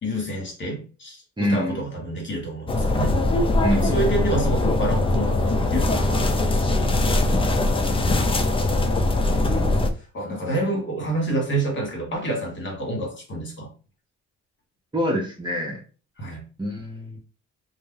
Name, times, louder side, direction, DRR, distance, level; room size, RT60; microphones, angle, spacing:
voice 1, 0.0-3.2 3.7-7.0 9.2-9.8 10.1-13.7 16.2-16.4, right 2 dB, 40° left, 1.4 m, -28 dB
voice 2, 1.4-1.8 3.6-4.0 7.4-7.8 14.9-15.8 16.6-17.2, equal, 15° right, 0.8 m, -26 dB
sound 1, 2.7-9.9, left 2 dB, 20° left, 0.4 m, -21 dB
2.5 x 2.0 x 3.7 m
cardioid pair, 90°, 30 cm